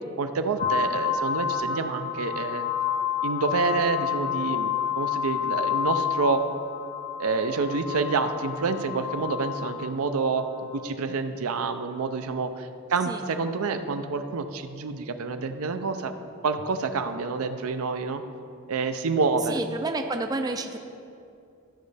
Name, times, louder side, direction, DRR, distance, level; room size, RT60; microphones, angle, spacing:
voice 1, 0.2-2.7 3.2-6.5 7.2-10.5 10.7-16.1 16.4-18.2 18.7-19.6, right 4 dB, 75° right, 8 dB, 0.5 m, -28 dB
sound 1, 0.6-10.8, left 8 dB, 55° left, 1.0 m, -29 dB
voice 2, 19.5-20.8, right 2 dB, 20° right, 6 dB, 0.3 m, -30 dB
13.0 x 5.2 x 3.3 m, 2.6 s
head